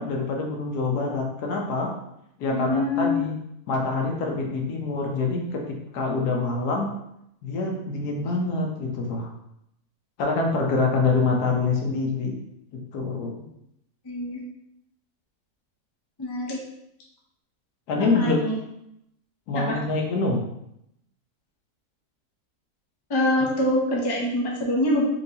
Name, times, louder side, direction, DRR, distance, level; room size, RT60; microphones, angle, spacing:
voice 1, 0.0-1.9 2.4-3.3 3.7-6.9 7.4-9.3 10.2-12.4 12.7-13.3 17.9-18.4 19.5-20.4, left 3 dB, 85° left, 0 dB, 1.3 m, -25 dB
voice 2, 2.5-3.2 14.0-14.4 16.2-16.6 18.0-18.5 19.5-19.8 23.1-25.1, left 1 dB, 40° left, -2 dB, 0.3 m, -25 dB
4.4 x 2.7 x 2.7 m, 0.79 s
omnidirectional pair, 1.6 m